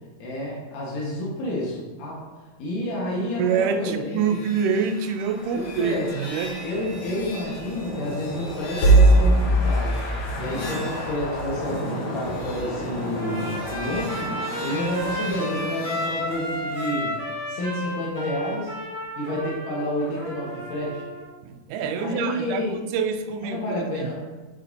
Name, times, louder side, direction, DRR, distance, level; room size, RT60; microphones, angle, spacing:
voice 1, 0.2-2.2 2.6-4.4 5.5-6.2 6.6-10.0 10.4-14.3 14.6-17.2 17.5-18.7 19.2-21.0 22.0-22.8 23.4-24.2, left 1 dB, 85° left, -4 dB, 3.0 m, -29 dB
voice 2, 3.1-6.6 11.9-12.0 21.4-24.1, right 6 dB, 85° right, 7 dB, 2.1 m, -26 dB
sound 1, 4.1-17.0, right 1 dB, 60° left, 1.5 m, -25 dB
Trumpet, 13.1-21.3, equal, 5° right, 1.5 m, -32 dB
8.3 x 6.8 x 2.7 m, 1.2 s
omnidirectional pair, 3.7 m